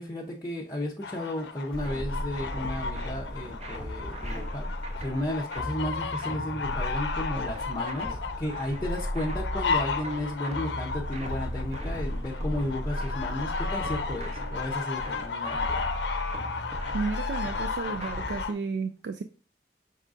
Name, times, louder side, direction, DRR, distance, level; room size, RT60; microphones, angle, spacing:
voice 1, 0.0-4.7 5.0-15.9, left 1 dB, 20° left, 0.6 m, -34 dB
sound 1, 1.0-18.5, left 5 dB, 85° left, 0.6 m, -34 dB
sound 2, 1.7-3.2 4.2-5.8 6.6-8.0 8.8-10.4 10.9-16.1, equal, 5° left, 0.9 m, -38 dB
sound 3, 1.8-18.4, equal, 40° right, 0.7 m, -37 dB
voice 2, 16.9-19.2, right 4 dB, 75° right, 0.3 m, -32 dB
5.4 x 3.6 x 2.5 m
head